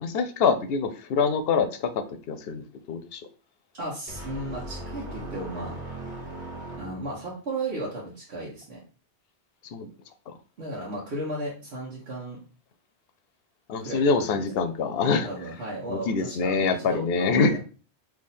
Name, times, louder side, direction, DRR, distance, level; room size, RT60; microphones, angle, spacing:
voice 1, 0.0-3.2 9.7-9.9 10.3-10.4 13.7-15.3 15.9-17.6, left 4 dB, 70° left, 10 dB, 0.7 m, -25 dB
voice 2, 3.8-5.7 6.8-8.8 10.6-12.4 13.8-14.4 15.2-17.6, right 1 dB, 75° right, -6 dB, 1.4 m, -35 dB
sound 1, 4.1-7.3, right 1 dB, 45° right, 1.3 m, -38 dB
3.6 x 2.7 x 4.1 m, 0.36 s
omnidirectional pair, 1.1 m